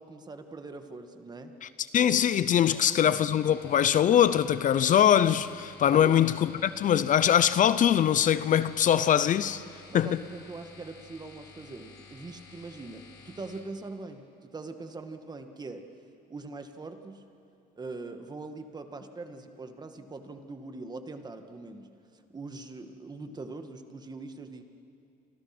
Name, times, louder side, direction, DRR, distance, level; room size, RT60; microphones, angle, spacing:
voice 1, 0.0-1.5 2.7-3.2 5.9-6.1 9.9-15.8 16.3-17.2 17.8-24.6, right 3 dB, 25° right, 1.9 m, -42 dB
voice 2, 1.9-9.6 9.9-10.2, left 10 dB, 50° left, 0.7 m, -22 dB
sound 1, 2.9-13.6, left 5 dB, 75° left, 4.9 m, -52 dB
28.5 x 25.5 x 6.1 m
cardioid pair, 110°, 17 cm